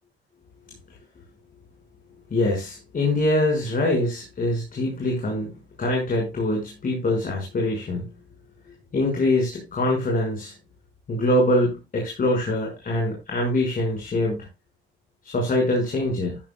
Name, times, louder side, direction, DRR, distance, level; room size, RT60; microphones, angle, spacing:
voice 1, 2.3-5.5 5.8-8.1 8.9-10.5 11.1-14.5 15.2-16.4, left 1 dB, 45° left, 0 dB, 5.6 m, -24 dB
14.0 x 11.5 x 2.3 m, 0.24 s
cardioid pair, 90°, 20 cm